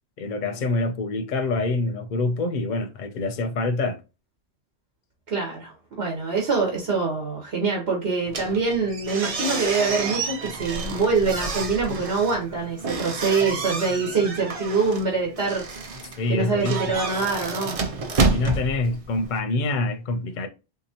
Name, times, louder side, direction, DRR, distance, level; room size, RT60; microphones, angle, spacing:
voice 1, 0.2-4.0 16.2-17.0 18.3-20.5, left 2 dB, 55° left, 0.6 m, -26 dB
voice 2, 5.3-15.6 16.3-17.7, right 4 dB, 75° right, 1.2 m, -24 dB
sound 1, 8.3-19.4, right 3 dB, 40° right, 0.6 m, -29 dB
3.6 x 2.8 x 2.7 m
omnidirectional pair, 1.1 m